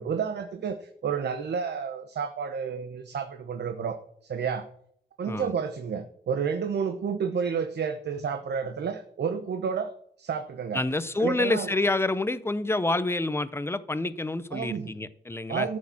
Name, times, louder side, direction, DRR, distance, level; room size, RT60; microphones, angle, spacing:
voice 1, 0.0-4.0 4.2-4.7 5.2-9.9 10.2-10.8 11.2-11.7 14.5-14.9 15.5-15.8, right 6 dB, 75° right, 8 dB, 1.0 m, -30 dB
voice 2, 10.7-15.8, left 2 dB, 15° left, 14 dB, 0.6 m, -28 dB
14.0 x 6.4 x 7.1 m, 0.65 s
wide cardioid pair, 160°, 18 cm